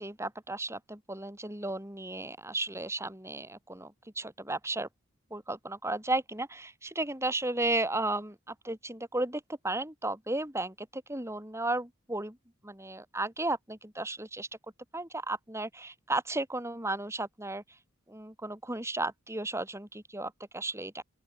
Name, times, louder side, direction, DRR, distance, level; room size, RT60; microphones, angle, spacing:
voice 1, 0.0-4.9 5.3-12.4 12.6-14.5 14.9-17.6 18.1-21.0, right 2 dB, 15° right, 4.5 m, -34 dB
open air
head